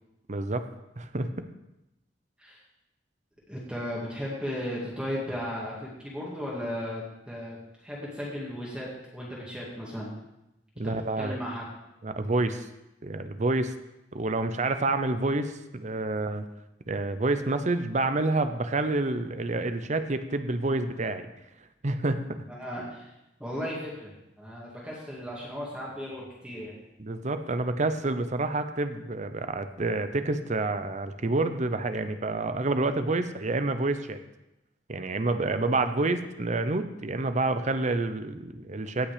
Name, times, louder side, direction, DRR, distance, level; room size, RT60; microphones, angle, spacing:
voice 1, 0.3-0.6 1.0-1.3 10.8-11.4 12.0-12.7 13.0-13.7 14.1-16.4 16.9-21.3 21.8-22.2 27.0-34.2 34.9-39.1, right 2 dB, 40° right, 9 dB, 0.8 m, -28 dB
voice 2, 3.5-10.1 11.2-11.6 22.6-23.1 23.4-26.7, equal, 5° right, -6 dB, 2.4 m, -36 dB
17.0 x 5.9 x 5.1 m, 0.92 s
head